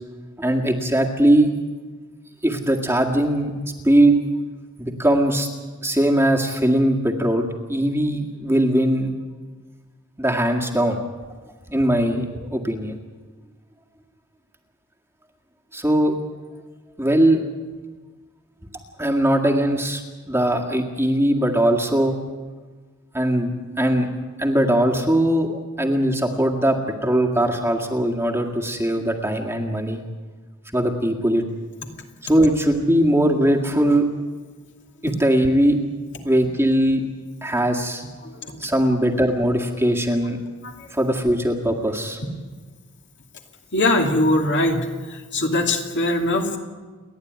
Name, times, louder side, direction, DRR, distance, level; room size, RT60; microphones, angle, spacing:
voice 1, 0.4-1.5 2.4-3.5 3.8-4.2 4.8-5.5 5.8-9.1 10.2-11.0 11.7-13.0 15.7-16.1 17.0-17.4 19.0-22.2 23.1-24.1 24.4-30.0 30.7-31.4 32.2-34.1 35.0-35.8 36.2-37.0 37.4-38.0 38.6-40.4 40.9-42.2, right 1 dB, 10° right, 1 dB, 1.9 m, -20 dB
voice 2, 38.2-38.6 40.6-40.9 43.7-46.6, left 1 dB, 55° left, 2 dB, 2.6 m, -22 dB
29.5 x 11.5 x 9.4 m, 1.4 s
head